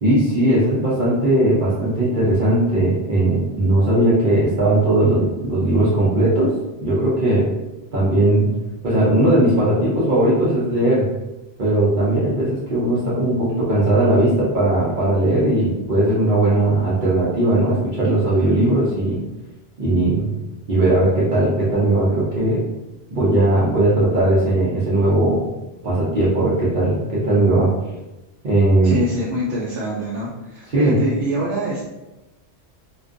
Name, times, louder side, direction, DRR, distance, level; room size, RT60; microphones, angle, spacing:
voice 1, 0.0-6.5 6.8-7.4 7.9-8.5 8.8-11.1 11.6-19.2 19.8-20.3 20.7-22.6 23.1-25.4 25.8-27.7 28.4-29.0 30.7-31.0, right 1 dB, 50° right, -9 dB, 0.7 m, -18 dB
voice 2, 28.8-31.9, equal, 75° right, -7 dB, 0.9 m, -25 dB
2.4 x 2.2 x 2.5 m, 1.0 s
omnidirectional pair, 1.3 m